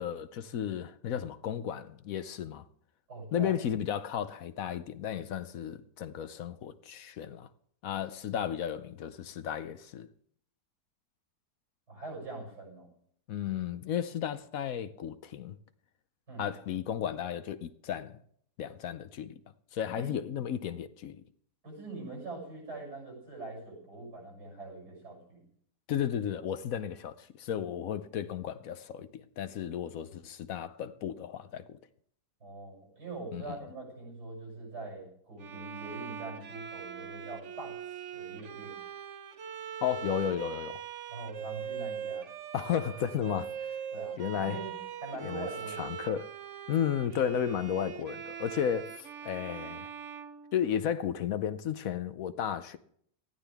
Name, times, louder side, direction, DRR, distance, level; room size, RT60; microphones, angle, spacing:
voice 1, 0.0-2.7 3.3-7.5 7.8-10.1 13.3-15.6 16.4-18.2 18.6-19.4 19.7-21.2 25.9-31.8 33.3-33.6 39.8-40.8 42.5-43.8 44.2-44.6 45.2-45.5 45.8-46.3 46.7-49.9 50.5-52.8, left 9 dB, 65° left, 1.0 m, -34 dB
voice 2, 3.1-3.6 11.9-12.9 16.3-16.5 19.9-20.1 21.6-25.4 32.4-38.8 41.1-42.3 43.9-44.7 45.0-46.0, right 3 dB, 85° right, 7.5 m, -43 dB
Bowed string instrument, 35.4-51.1, right 8 dB, 55° right, 1.0 m, -42 dB
19.0 x 13.5 x 3.5 m
omnidirectional pair, 1.7 m